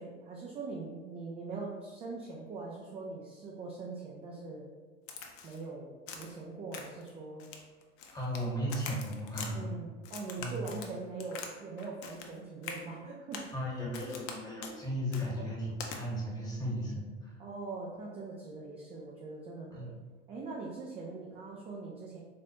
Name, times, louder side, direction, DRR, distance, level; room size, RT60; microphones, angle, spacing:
voice 1, 0.0-4.7 5.4-7.4 9.5-13.4 13.7-13.8 15.3-15.5 17.4-19.9 20.3-22.2, right 3 dB, 20° right, -3 dB, 0.3 m, -42 dB
Crack, 5.1-5.6 6.1-6.4 6.7-7.1 7.4-8.4 8.7-9.5 10.0-11.5 11.8-12.3 12.6-12.8 13.3-13.5 13.9-14.3 14.6-14.8 15.1-15.3 15.8-16.0, left 5 dB, 40° left, 0.5 m, -43 dB
voice 2, 8.1-9.7 10.4-10.6 13.5-17.3 19.7-19.9, equal, 10° left, -5 dB, 1.2 m, -36 dB
3.9 x 2.2 x 2.8 m, 1.4 s
figure-of-eight pair, 75°, 35 cm